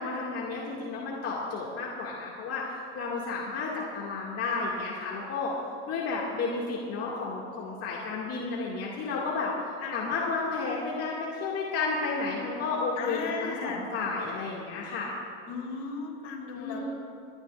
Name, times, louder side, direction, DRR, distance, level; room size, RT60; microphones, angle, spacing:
voice 1, 0.0-2.7 2.9-5.5 5.9-9.5 9.9-15.1 16.5-16.9, left 4 dB, 45° left, -4 dB, 2.1 m, -32 dB
voice 2, 13.0-13.9 15.4-16.9, left 4 dB, 65° left, -1 dB, 3.3 m, -36 dB
28.5 x 10.5 x 2.5 m, 2.6 s
supercardioid pair, 100°, 34 cm